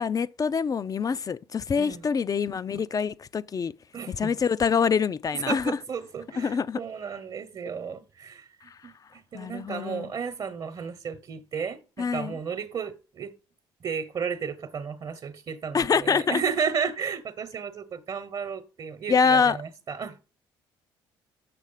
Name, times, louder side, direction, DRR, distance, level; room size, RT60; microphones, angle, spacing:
voice 1, 0.0-3.7 4.1-5.8 6.4-6.8 8.7-8.9 9.3-10.1 12.0-12.4 15.7-16.4 19.1-19.6, left 6 dB, 35° left, 0.5 m, -25 dB
voice 2, 3.9-4.3 5.3-8.5 8.8-13.3 13.8-20.2, right 6 dB, 50° right, 1.1 m, -33 dB
7.7 x 6.4 x 5.7 m
supercardioid pair, 70°, 10 cm